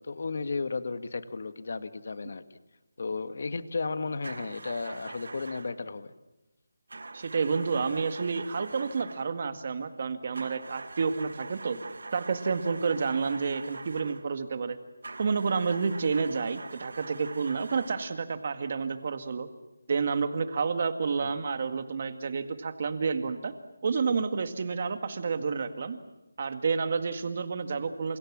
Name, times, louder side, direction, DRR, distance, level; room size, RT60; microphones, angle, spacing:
voice 1, 0.0-2.4 3.0-6.1 21.2-21.3, left 4 dB, 45° left, 12 dB, 1.6 m, -34 dB
sound 1, 4.2-5.8 6.9-9.4 10.3-14.3 15.0-18.3, right 3 dB, 65° right, 1.7 m, -44 dB
voice 2, 7.1-11.8 12.1-14.8 15.2-19.5 19.9-23.5 23.8-26.0 26.4-28.2, right 5 dB, 35° right, 10 dB, 1.9 m, -29 dB
28.5 x 27.5 x 7.5 m, 1.0 s
figure-of-eight pair, 175°, 0 cm